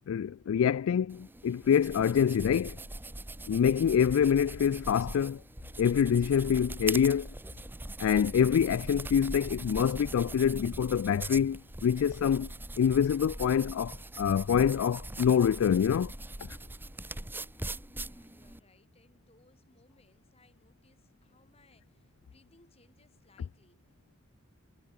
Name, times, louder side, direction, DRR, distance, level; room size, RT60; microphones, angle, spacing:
voice 1, 0.1-2.8 3.5-5.4 5.8-7.3 8.0-12.5 12.8-16.1, left 8 dB, 70° left, 0.3 m, -26 dB
sound 1, 1.1-18.6, right 2 dB, 10° right, 0.9 m, -41 dB
voice 2, 17.8-24.2, left 2 dB, 30° left, 7.6 m, -66 dB
head